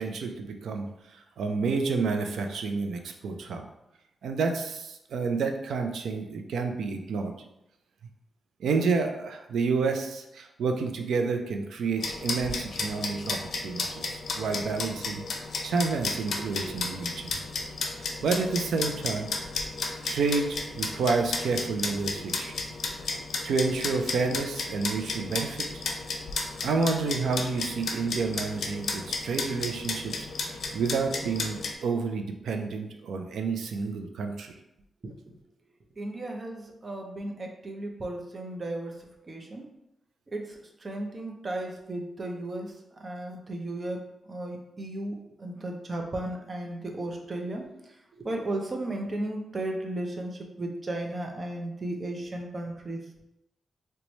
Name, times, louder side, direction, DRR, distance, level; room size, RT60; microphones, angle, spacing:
voice 1, 0.0-3.6 4.2-7.3 8.6-15.2 15.6-17.4 18.0-19.5 20.0-22.5 23.4-25.8 26.6-34.5, right 4 dB, 90° right, 5 dB, 0.4 m, -29 dB
sound 1, 12.0-31.7, left 3 dB, 75° left, 0.5 m, -34 dB
voice 2, 35.0-35.4 36.0-39.7 40.3-53.0, right 1 dB, 35° right, 2 dB, 0.6 m, -35 dB
3.0 x 2.2 x 3.9 m, 0.86 s
cardioid pair, 95°, 0 cm